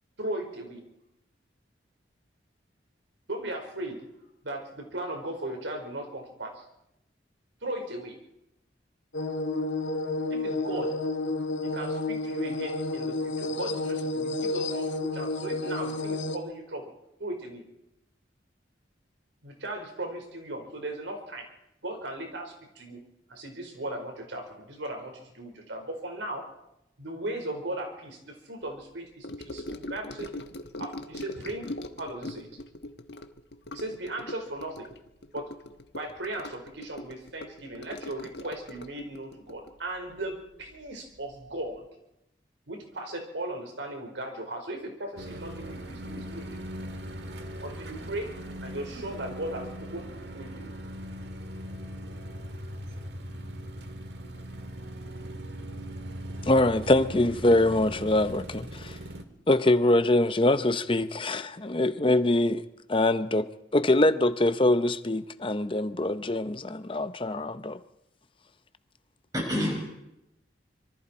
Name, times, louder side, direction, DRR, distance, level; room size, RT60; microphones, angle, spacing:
voice 1, 0.2-0.8 3.3-4.0 4.4-6.5 7.6-8.2 10.3-10.9 11.6-16.9 17.2-17.6 19.4-21.5 21.8-23.0 23.3-26.4 27.0-30.4 30.8-32.5 33.7-34.9 35.3-35.5 35.9-41.8 42.7-46.7 47.6-50.7, right 1 dB, 90° right, 4.6 m, -37 dB
sound 1, 9.1-16.4, left 2 dB, 85° left, 1.9 m, -30 dB
Gurgling / Sink (filling or washing) / Trickle dribble, 29.2-40.9 41.1-41.5 41.7-41.8, left 1 dB, 65° left, 1.2 m, -41 dB
sound 2, 45.2-59.2, equal, 65° right, 1.8 m, -40 dB
voice 2, 56.5-59.0 59.5-62.6 62.9-67.8, left 1 dB, 30° left, 0.8 m, -24 dB
voice 3, 69.3-69.8, left 1 dB, 20° right, 6.1 m, -29 dB
25.5 x 23.5 x 4.4 m
head